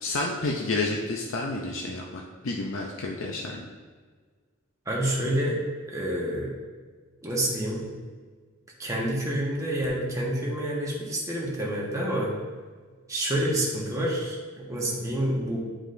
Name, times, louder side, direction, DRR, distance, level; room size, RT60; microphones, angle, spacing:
voice 1, 0.0-3.6, left 2 dB, 70° left, 0 dB, 0.6 m, -30 dB
voice 2, 4.9-5.6 5.9-6.5 7.2-7.8 8.8-12.3 13.1-15.6, right 1 dB, 15° right, -3 dB, 1.3 m, -28 dB
9.6 x 5.0 x 2.6 m, 1.5 s
head